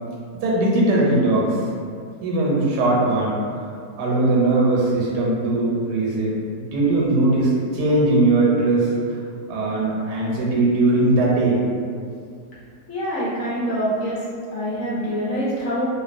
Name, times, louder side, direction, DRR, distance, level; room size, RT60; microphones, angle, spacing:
voice 1, 0.4-1.6 2.2-3.4 4.0-8.9 9.5-11.6, right 2 dB, 90° right, -4 dB, 1.2 m, -19 dB
voice 2, 12.9-14.2 14.5-15.9, equal, 65° left, -8 dB, 0.9 m, -25 dB
2.5 x 2.3 x 2.4 m, 2.2 s
omnidirectional pair, 1.7 m